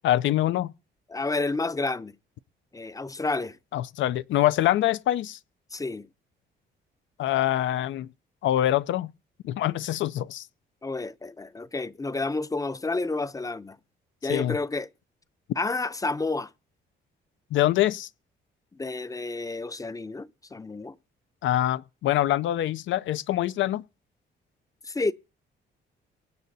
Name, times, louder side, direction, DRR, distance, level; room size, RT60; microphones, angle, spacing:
voice 1, 0.0-0.7 3.7-5.4 7.2-8.1 8.4-9.1 9.4-10.5 14.3-14.6 17.5-18.1 21.4-23.8, left 13 dB, 75° left, 0.5 m, -24 dB
voice 2, 1.1-2.2 2.7-3.6 5.7-6.1 10.8-13.8 14.2-14.9 15.6-16.5 18.7-21.0 24.8-25.1, left 3 dB, 15° left, 0.6 m, -30 dB
23.5 x 9.2 x 2.7 m
cardioid pair, 90°, 20 cm